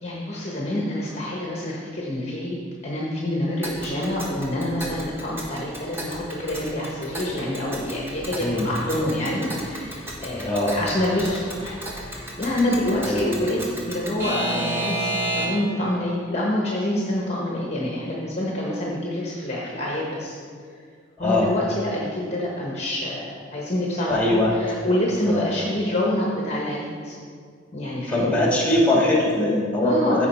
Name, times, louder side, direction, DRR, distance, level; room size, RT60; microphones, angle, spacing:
voice 1, 0.0-2.6 2.8-15.1 15.3-20.4 21.2-27.2 27.7-28.3 29.8-30.3, left 1 dB, 35° left, -4 dB, 1.1 m, -27 dB
Alarm / Clock, 3.6-15.8, right 1 dB, 10° right, 1.3 m, -32 dB
voice 2, 10.4-10.8 13.1-13.2 21.2-21.6 24.1-24.5 25.2-25.5 28.1-30.3, left 1 dB, 10° left, -4 dB, 2.0 m, -21 dB
14.5 x 4.9 x 4.3 m, 2.1 s
head